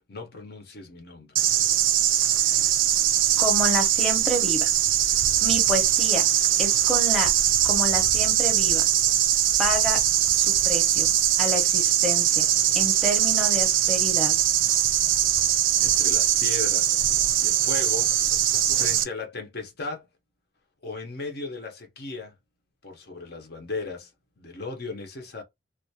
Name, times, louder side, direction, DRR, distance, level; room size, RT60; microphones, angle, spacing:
voice 1, 0.1-1.3 15.8-18.1 18.5-20.1 20.8-22.3 22.8-24.1 24.4-25.4, left 3 dB, 55° left, 0.7 m, -36 dB
sound 1, 1.3-19.0, right 11 dB, 85° right, 0.4 m, -21 dB
voice 2, 3.4-4.7 5.4-6.2 6.6-7.3 7.6-8.8 9.6-10.0 10.4-12.5 12.7-14.3, equal, ahead, 0.7 m, -29 dB
2.4 x 2.2 x 2.7 m
head